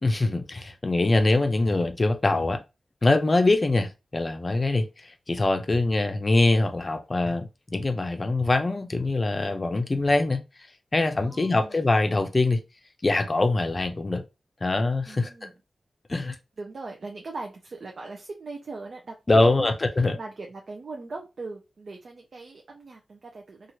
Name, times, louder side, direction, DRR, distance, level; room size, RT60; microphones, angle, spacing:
voice 1, 0.0-2.6 3.0-10.4 10.9-12.6 13.0-14.2 14.6-15.5 16.1-16.4 19.3-20.2, left 2 dB, 35° left, 0.5 m, -23 dB
voice 2, 11.1-11.7 15.1-15.5 16.2-19.7 20.2-23.7, right 3 dB, 60° right, 0.5 m, -40 dB
3.0 x 2.4 x 2.8 m
wide cardioid pair, 95°, 0 cm